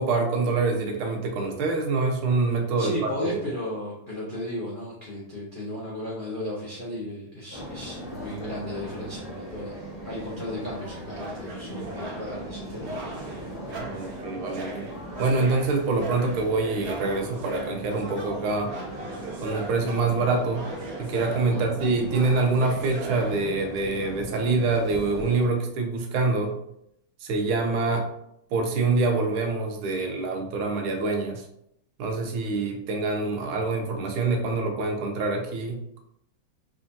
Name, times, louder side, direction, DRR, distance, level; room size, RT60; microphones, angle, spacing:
voice 1, 0.0-3.3 13.8-14.9 15.2-18.7 19.4-20.7 21.0-26.6 27.2-28.1 28.5-31.4 32.0-36.0, right 3 dB, 90° right, 3 dB, 1.6 m, -25 dB
voice 2, 2.8-9.8 10.0-12.9 13.2-13.3 13.7-14.0 21.5-21.7, left 1 dB, 70° left, -6 dB, 0.5 m, -35 dB
sound 1, 7.5-25.5, right 1 dB, 20° right, 0.8 m, -39 dB
sound 2, 11.1-24.2, right 2 dB, 60° right, 1.0 m, -40 dB
3.6 x 3.5 x 2.6 m, 0.76 s
omnidirectional pair, 2.3 m